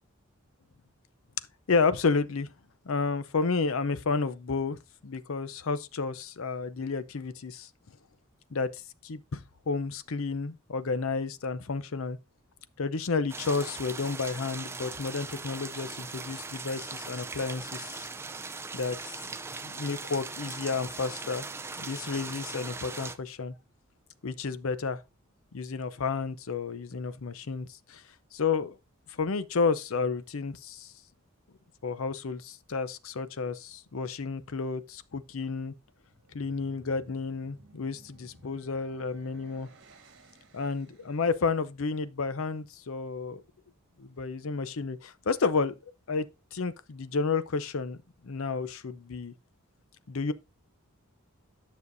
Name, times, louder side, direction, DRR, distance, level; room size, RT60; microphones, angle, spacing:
voice 1, 1.7-2.5 2.8-4.8 5.0-7.7 8.5-12.2 12.8-18.1 18.7-19.2 19.6-21.5 21.8-23.5 24.2-25.0 25.5-28.0 28.3-28.8 29.1-30.9 31.8-35.7 36.3-39.7 40.5-43.4 44.0-45.7 46.1-48.0 48.2-49.3 50.1-50.3, left 4 dB, 70° left, 0.6 m, -31 dB
sound 1, 13.3-23.2, right 4 dB, 10° right, 0.4 m, -40 dB
sound 2, 36.0-41.3, right 2 dB, 55° right, 1.5 m, -57 dB
9.6 x 6.4 x 2.6 m
head